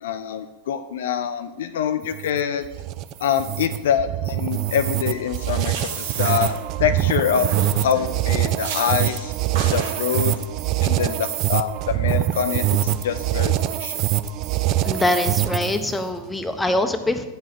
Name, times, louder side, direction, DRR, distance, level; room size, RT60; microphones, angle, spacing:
voice 1, 0.0-2.7 3.2-6.5 6.8-9.3 9.7-10.4 10.8-14.0, left 8 dB, 60° left, 10 dB, 0.4 m, -25 dB
sound 1, 2.0-15.9, right 13 dB, 40° right, 0.4 m, -24 dB
sound 2, 5.3-7.0 7.3-8.1 8.6-9.2 9.5-10.4, right 3 dB, 60° right, 1.5 m, -33 dB
voice 2, 14.7-17.3, left 1 dB, 10° left, 7 dB, 0.8 m, -23 dB
9.3 x 5.5 x 4.8 m, 1.1 s
figure-of-eight pair, 90°, 0 cm